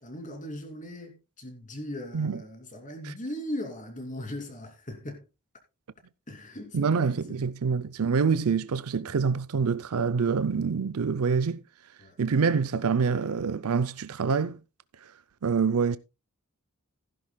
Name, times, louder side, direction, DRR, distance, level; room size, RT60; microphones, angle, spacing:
voice 1, 0.0-5.2 6.3-7.4 12.0-12.2, left 1 dB, 35° left, 2.8 m, -39 dB
voice 2, 6.7-11.6 12.2-14.6 15.4-16.0, right 5 dB, 70° right, 0.5 m, -26 dB
15.5 x 11.0 x 2.2 m
head